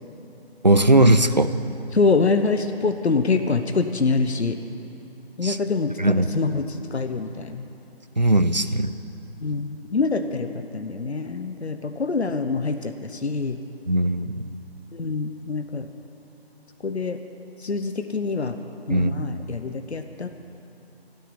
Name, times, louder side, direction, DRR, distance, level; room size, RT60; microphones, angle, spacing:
voice 1, 0.6-1.5 5.4-5.6 6.0-6.3 8.2-8.9 13.9-14.3 18.9-19.3, right 1 dB, 45° right, 12 dB, 0.5 m, -18 dB
voice 2, 1.9-4.6 5.4-7.6 9.4-13.6 14.9-15.9 16.8-17.2 17.6-18.6 18.9-20.3, left 4 dB, 90° left, 8 dB, 1.0 m, -25 dB
12.0 x 9.3 x 9.9 m, 2.9 s
figure-of-eight pair, 175°, 32 cm